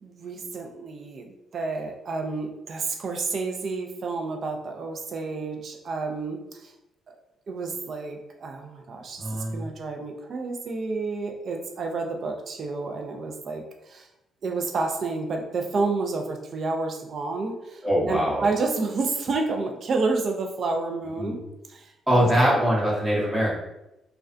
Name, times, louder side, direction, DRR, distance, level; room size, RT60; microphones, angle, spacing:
voice 1, 0.0-6.7 7.5-14.1 14.4-21.4 21.7-22.3, right 3 dB, 55° right, 3 dB, 0.4 m, -30 dB
voice 2, 9.2-9.6 17.8-18.5 21.1-21.3 22.1-23.5, equal, 15° right, -5 dB, 0.9 m, -22 dB
2.4 x 2.1 x 2.4 m, 0.91 s
cardioid pair, 90°, 0 cm